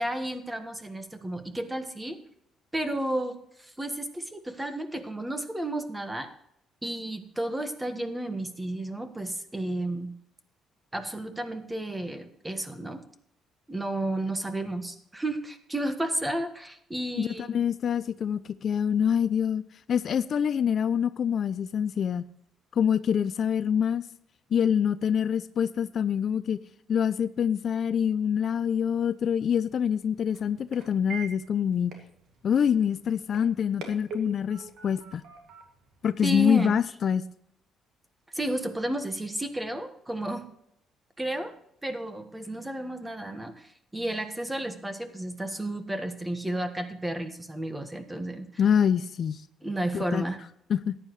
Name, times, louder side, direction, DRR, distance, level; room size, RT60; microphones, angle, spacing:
voice 1, 0.0-2.2 2.7-6.3 6.8-10.1 10.9-13.0 13.7-17.6 36.2-36.7 38.3-40.5 41.2-41.5 41.8-48.5 49.6-50.4, right 1 dB, 10° right, 8 dB, 1.4 m, -32 dB
voice 2, 17.2-19.6 19.9-22.3 22.8-24.0 24.5-26.6 26.9-32.0 32.4-35.2 36.0-37.3 48.6-49.4 49.9-50.2 50.7-51.0, left 8 dB, 50° left, 15 dB, 0.4 m, -25 dB
sound 1, 28.9-36.8, right 5 dB, 80° right, 2.2 m, -46 dB
14.5 x 10.0 x 3.2 m, 0.73 s
cardioid pair, 100°, 0 cm